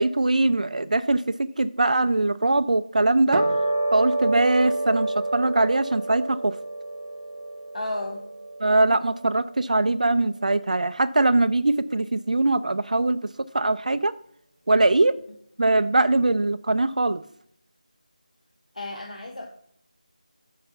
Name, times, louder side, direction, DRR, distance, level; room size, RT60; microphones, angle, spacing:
voice 1, 0.0-3.4 3.9-6.5 8.6-13.2 13.5-14.1 14.7-15.1 15.6-17.2, right 2 dB, 65° right, 12 dB, 0.4 m, -22 dB
sound 1, 3.3-9.8, right 2 dB, 20° right, 0.8 m, -28 dB
voice 2, 7.7-8.2 18.7-19.5, left 1 dB, 60° left, 2 dB, 1.3 m, -32 dB
6.8 x 5.5 x 5.3 m, 0.68 s
figure-of-eight pair, 175°, 4 cm